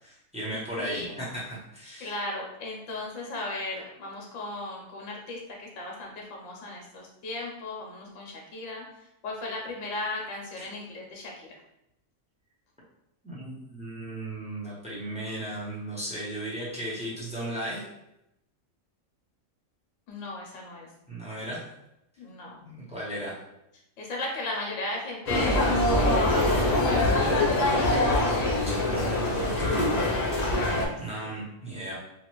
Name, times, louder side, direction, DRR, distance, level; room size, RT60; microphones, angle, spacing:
voice 1, 0.0-2.1 10.6-10.7 13.2-17.9 21.1-21.6 22.6-23.4 28.6-29.8 31.0-31.9, right 1 dB, 5° right, -6 dB, 0.6 m, -36 dB
voice 2, 0.8-1.2 2.0-8.8 9.2-11.5 20.1-20.9 22.2-22.5 24.0-27.9 31.2-31.3, left 2 dB, 70° left, -1 dB, 1.0 m, -36 dB
sound 1, 25.3-30.9, left 1 dB, 40° left, 0.6 m, -24 dB
2.9 x 2.4 x 3.0 m, 0.84 s
omnidirectional pair, 1.3 m